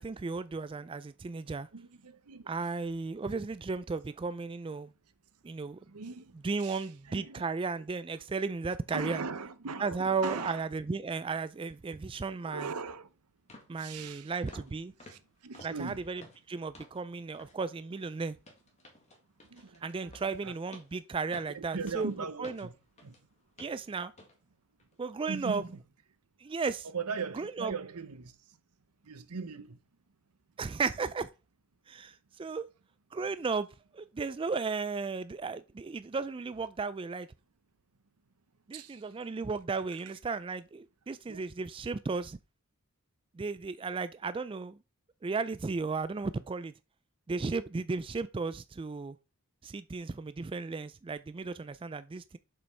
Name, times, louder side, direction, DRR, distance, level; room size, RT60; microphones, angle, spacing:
voice 1, 0.0-1.7 2.5-4.9 5.4-5.8 6.4-9.2 9.8-12.7 13.7-14.9 15.6-16.2 16.5-18.4 19.8-22.1 22.4-22.7 23.6-24.1 25.0-25.6 26.4-26.9 27.3-27.7 30.6-31.3 31.9-32.7 33.1-33.7 33.9-37.3 38.7-42.4 43.3-44.8 45.2-46.7 47.3-49.2 49.6-52.4, right 4 dB, 25° right, 0.3 m, -35 dB
voice 2, 1.7-2.6 5.8-7.4 8.9-10.7 12.4-13.1 13.8-14.7 15.0-16.1 19.4-20.5 21.5-22.8 23.0-23.2 25.3-25.8 26.8-28.6 29.0-29.8 38.7-39.4 39.9-40.0 41.3-41.4, right 4 dB, 90° right, 0.8 m, -40 dB
sound 1, 12.9-13.0 13.5-13.7 14.0-14.2 14.5-14.7 15.0-17.0 17.3-17.6 17.9-23.2 23.6-23.8 24.2-24.4 24.8-24.9, left 1 dB, 30° left, 1.9 m, -54 dB
6.9 x 5.4 x 4.5 m
head